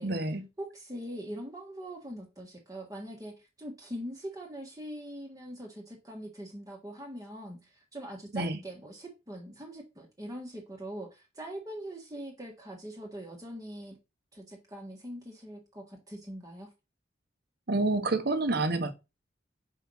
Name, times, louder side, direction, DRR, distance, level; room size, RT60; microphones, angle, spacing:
voice 1, 0.0-0.5 8.3-8.6 17.7-18.9, right 2 dB, 60° right, 1.1 m, -28 dB
voice 2, 0.6-14.0 14.3-16.7, equal, 20° right, 1.5 m, -42 dB
4.9 x 4.7 x 5.5 m
head